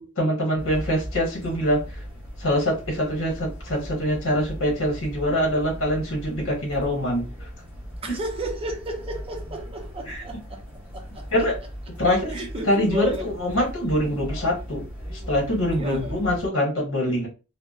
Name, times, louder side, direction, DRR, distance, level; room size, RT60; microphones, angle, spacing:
voice 1, 0.2-2.0 2.4-7.5 8.1-8.2 10.1-10.2 11.3-11.6 12.0-14.8 15.1-17.3, equal, 65° left, 1.0 m, -24 dB
sound 1, 0.6-16.5, equal, 5° right, 1.0 m, -38 dB
voice 2, 8.0-11.3 12.3-13.3 15.7-16.2, right 1 dB, 25° right, 0.5 m, -33 dB
2.7 x 2.1 x 2.3 m
head